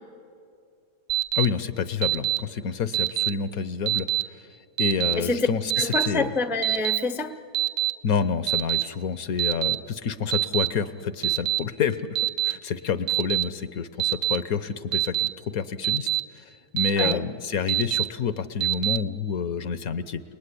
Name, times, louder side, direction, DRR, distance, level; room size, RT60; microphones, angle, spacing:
Alarm, 1.1-1.5 2.0-2.4 2.9-3.3 3.9-4.2 4.8-5.1 5.7-6.1 6.6-7.0 7.5-7.9 8.5-8.8 9.4-9.7 10.3-10.7 11.2-11.6 12.2-12.5 13.1-13.4 14.0-14.4 14.9-15.3 15.8-16.2 16.8-17.1 17.7-18.0 18.6-19.0, right 14 dB, 45° right, 0.7 m, -24 dB
voice 1, 1.3-4.5 4.8-6.3 8.0-16.1 16.3-20.2, left 6 dB, 65° left, 13 dB, 1.2 m, -28 dB
voice 2, 5.2-5.5 5.8-7.4 17.0-17.2, left 3 dB, ahead, 10 dB, 0.6 m, -27 dB
29.5 x 19.5 x 9.9 m, 2.4 s
omnidirectional pair, 1.8 m